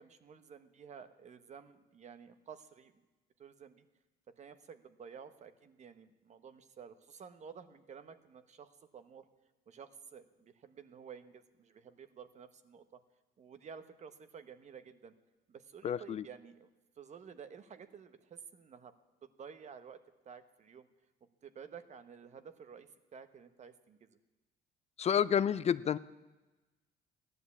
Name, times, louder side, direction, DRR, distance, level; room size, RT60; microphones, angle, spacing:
voice 1, 0.0-2.9 3.4-3.8 4.4-9.2 9.7-13.0 13.4-15.1 15.5-16.7 17.0-18.9 19.2-20.0 20.2-20.9 21.4-24.1, right 7 dB, 45° right, 11 dB, 1.2 m, -52 dB
voice 2, 15.8-16.2 25.0-26.0, left 8 dB, 40° left, 16 dB, 0.5 m, -29 dB
15.5 x 11.0 x 8.5 m, 1.1 s
cardioid pair, 110°, 17 cm